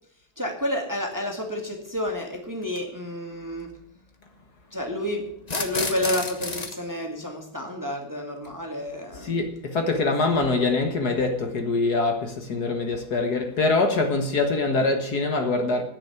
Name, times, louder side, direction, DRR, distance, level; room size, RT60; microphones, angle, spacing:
voice 1, 0.4-3.7 4.7-5.3 5.6-9.4 10.2-10.4, left 1 dB, 10° right, 1.8 m, -30 dB
sound 1, 1.1-1.2 2.6-2.8 5.4-6.8, left 3 dB, 25° left, 1.0 m, -30 dB
voice 2, 9.1-15.8, left 3 dB, 55° left, 2.0 m, -24 dB
10.5 x 8.8 x 9.6 m
omnidirectional pair, 2.1 m